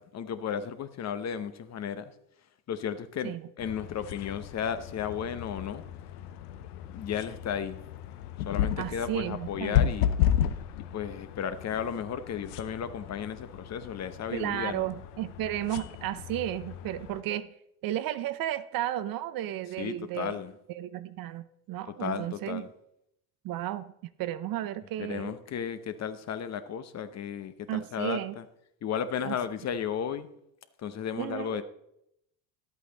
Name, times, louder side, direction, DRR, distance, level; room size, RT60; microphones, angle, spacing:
voice 1, 0.1-2.0 2.7-5.8 6.9-7.8 8.5-10.1 10.8-14.9 19.8-20.5 21.9-22.7 25.0-28.4 28.8-30.3 30.8-31.6, left 8 dB, 35° left, 12 dB, 0.8 m, -34 dB
sound 1, 3.6-17.2, left 10 dB, 85° left, 0.7 m, -33 dB
voice 2, 8.8-9.9 14.3-17.5 17.8-20.4 20.7-22.6 23.4-23.9 24.2-25.3 27.7-28.4 29.2-29.4 31.2-31.6, right 13 dB, 50° right, 14 dB, 0.7 m, -33 dB
11.0 x 8.3 x 3.9 m, 0.78 s
hypercardioid pair, 80°, 44 cm